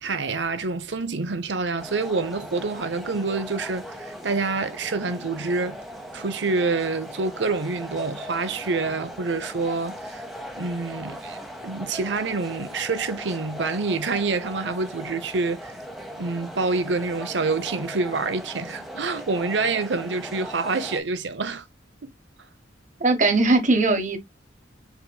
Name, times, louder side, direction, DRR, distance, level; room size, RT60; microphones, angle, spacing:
voice 1, 0.0-5.8 6.1-10.3 10.5-11.4 11.6-15.8 16.2-21.6 22.0-22.1, right 3 dB, 70° right, 0.8 m, -27 dB
sound 1, 1.8-21.0, equal, ahead, 0.9 m, -39 dB
voice 2, 23.0-24.2, right 3 dB, 45° right, 1.2 m, -19 dB
4.3 x 4.2 x 2.3 m
head